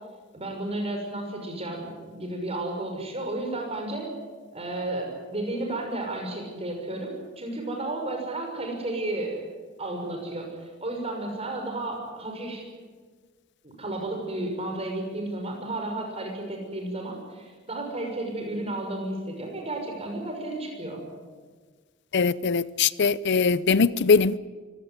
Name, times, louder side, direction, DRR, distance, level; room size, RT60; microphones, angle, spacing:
voice 1, 0.3-4.1 4.5-7.1 7.4-9.3 9.8-10.5 10.8-12.7 13.6-21.0, right 2 dB, 30° right, 6.1 m, -32 dB
voice 2, 22.1-24.4, left 5 dB, 60° left, 0.6 m, -21 dB
24.5 x 17.0 x 9.6 m
head